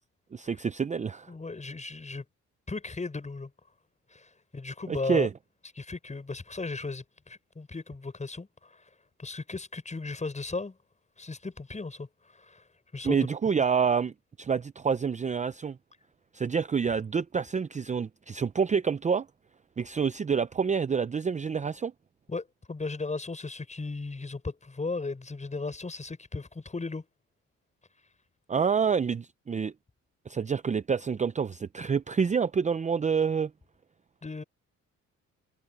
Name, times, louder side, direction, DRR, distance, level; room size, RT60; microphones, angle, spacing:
voice 1, 0.3-1.3 4.9-5.3 13.0-14.1 14.4-15.8 16.3-19.3 19.8-21.9 28.5-29.7 30.3-33.5, right 6 dB, 25° right, 0.6 m, -27 dB
voice 2, 1.3-2.2 2.7-3.5 4.1-5.3 5.8-8.8 9.2-10.8 11.2-12.6 12.9-13.2 22.3-27.1 34.2-34.4, left 3 dB, 25° left, 6.7 m, -36 dB
cardioid pair, 90°, 30 cm